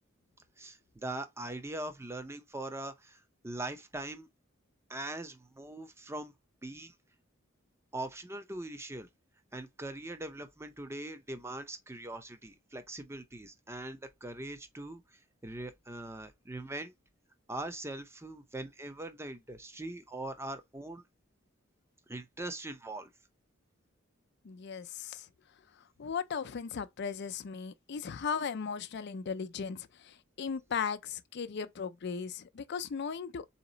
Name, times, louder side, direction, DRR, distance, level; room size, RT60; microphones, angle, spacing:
voice 1, 0.6-4.3 4.9-6.3 6.6-6.9 7.9-9.1 9.5-16.9 17.5-21.0 22.1-23.1, right 2 dB, 15° right, 0.6 m, -41 dB
voice 2, 24.4-25.3 26.0-33.5, left 6 dB, 60° left, 0.4 m, -37 dB
4.0 x 2.9 x 3.9 m
head